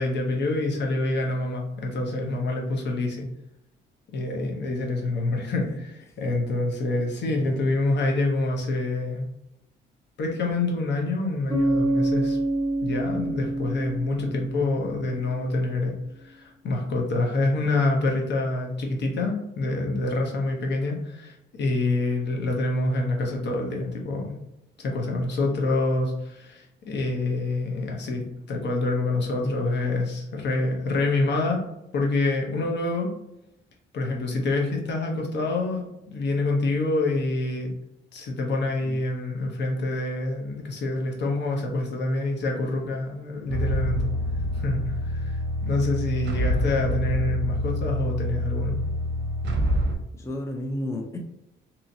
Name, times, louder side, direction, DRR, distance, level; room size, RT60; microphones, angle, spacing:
voice 1, 0.0-3.3 4.1-9.3 10.2-12.4 12.8-15.9 16.2-24.3 24.8-31.6 31.9-33.1 33.9-37.7 38.1-44.1 44.5-45.3 45.6-48.8, left 2 dB, 60° left, 1 dB, 0.8 m, -26 dB
Bass guitar, 11.5-15.3, right 1 dB, 20° right, 1.2 m, -27 dB
sound 1, 43.5-50.0, equal, 65° right, 0.6 m, -26 dB
voice 2, 50.1-51.2, left 1 dB, 15° left, 3 dB, 0.4 m, -32 dB
2.8 x 2.5 x 2.7 m, 0.86 s
cardioid pair, 90°, 20 cm